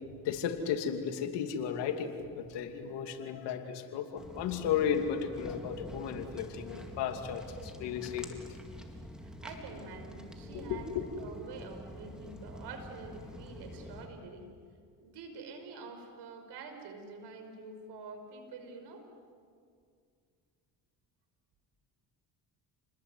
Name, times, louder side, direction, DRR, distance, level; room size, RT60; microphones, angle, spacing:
voice 1, 0.2-8.4 10.7-11.0, left 8 dB, 85° left, 6 dB, 2.8 m, -34 dB
Walk footsteps, 4.2-14.1, equal, ahead, 4.2 m, -46 dB
voice 2, 9.2-10.9 11.2-14.4 15.0-19.0, right 4 dB, 75° right, 6 dB, 5.6 m, -47 dB
30.0 x 21.0 x 9.5 m, 2.2 s
supercardioid pair, 75°, 41 cm